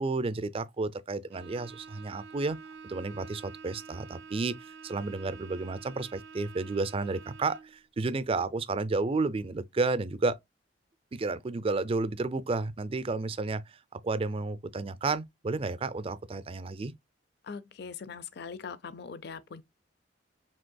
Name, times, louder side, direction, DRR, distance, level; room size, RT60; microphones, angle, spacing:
voice 1, 0.0-2.6 2.8-10.4 11.1-16.9, right 3 dB, 30° right, 0.4 m, -31 dB
Bowed string instrument, 1.3-7.8, right 5 dB, 80° right, 0.5 m, -48 dB
voice 2, 17.4-19.6, left 5 dB, 65° left, 0.5 m, -41 dB
5.2 x 3.5 x 2.2 m
head